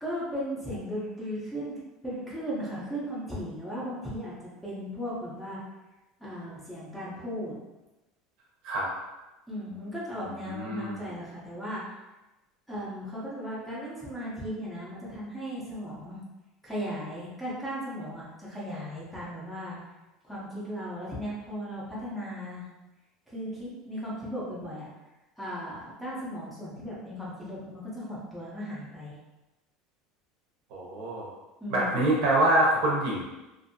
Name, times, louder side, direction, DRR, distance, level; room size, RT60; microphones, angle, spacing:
voice 1, 0.0-5.6 6.2-7.6 9.5-11.8 12.7-16.2 16.6-19.8 20.3-22.7 23.3-24.9 25.4-29.1 31.6-32.0, equal, 5° left, -8 dB, 0.6 m, -36 dB
voice 2, 10.5-11.0 30.7-31.3 31.7-33.2, right 1 dB, 55° right, -3 dB, 0.8 m, -25 dB
2.6 x 2.5 x 2.6 m, 1.0 s
cardioid pair, 170°, 0 cm